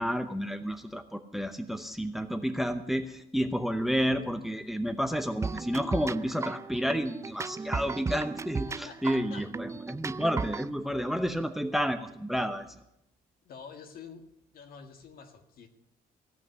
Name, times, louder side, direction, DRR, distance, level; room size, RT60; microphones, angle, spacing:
voice 1, 0.0-12.8, equal, ahead, 10 dB, 0.8 m, -30 dB
sound 1, 5.4-10.7, right 4 dB, 15° right, 0.4 m, -35 dB
voice 2, 8.7-9.5 13.4-14.3 14.5-15.7, left 6 dB, 60° left, 6 dB, 1.9 m, -48 dB
16.5 x 5.9 x 9.5 m, 0.78 s
cardioid pair, 110°, 17 cm